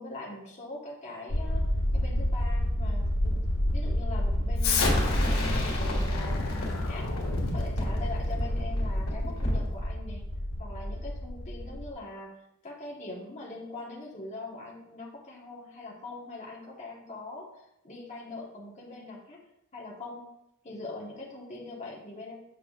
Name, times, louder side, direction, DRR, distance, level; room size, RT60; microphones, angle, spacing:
voice 1, 0.0-7.1 7.5-10.3 10.6-12.4 12.6-19.4 19.7-20.3 20.6-22.4, left 2 dB, 35° left, -3 dB, 1.1 m, -42 dB
sound 1, 1.3-11.9, equal, 65° left, 0.8 m, -30 dB
Explosion, 4.6-9.7, left 2 dB, 80° left, 1.9 m, -30 dB
7.6 x 5.7 x 2.4 m, 0.83 s
head